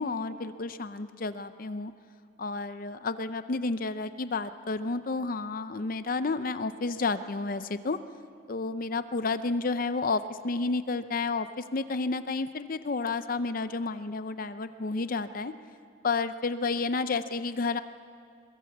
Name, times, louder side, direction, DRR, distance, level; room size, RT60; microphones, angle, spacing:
voice 1, 0.0-1.9 2.4-8.0 8.5-15.5 16.0-17.8, left 3 dB, 50° left, 11 dB, 0.6 m, -31 dB
22.5 x 22.5 x 7.4 m, 2.2 s
head